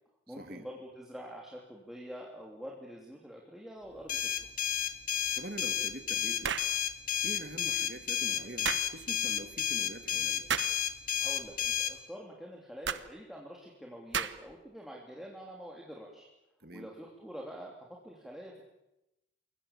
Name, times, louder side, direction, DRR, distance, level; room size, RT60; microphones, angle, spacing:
voice 1, 0.3-4.3 11.2-16.3 16.7-17.7 18.0-18.6, equal, ahead, -2 dB, 3.1 m, -46 dB
sound 1, 4.1-11.9, left 9 dB, 45° left, 1.8 m, -31 dB
voice 2, 5.3-6.6 7.2-10.5 16.6-16.9, right 1 dB, 55° right, 6 dB, 2.1 m, -44 dB
sound 2, 6.4-6.7 8.6-8.9 10.5-10.8 12.8-13.1 14.1-14.5, right 7 dB, 80° right, 1.2 m, -32 dB
28.5 x 23.0 x 7.4 m, 0.90 s
head